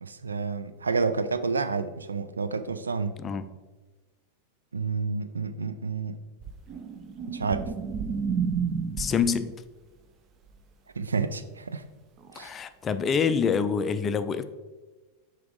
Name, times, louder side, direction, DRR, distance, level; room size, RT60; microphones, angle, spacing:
voice 1, 0.0-3.2 4.7-6.2 7.3-7.6 11.0-11.9 12.3-12.5, right 4 dB, 75° right, 11 dB, 0.3 m, -29 dB
sound 1, 6.4-9.3 12.2-12.3, right 6 dB, 30° right, 0.6 m, -30 dB
voice 2, 8.9-9.6 12.4-14.4, left 6 dB, 25° left, 11 dB, 0.4 m, -26 dB
5.9 x 4.8 x 3.7 m, 1.3 s
figure-of-eight pair, 90°, 0 cm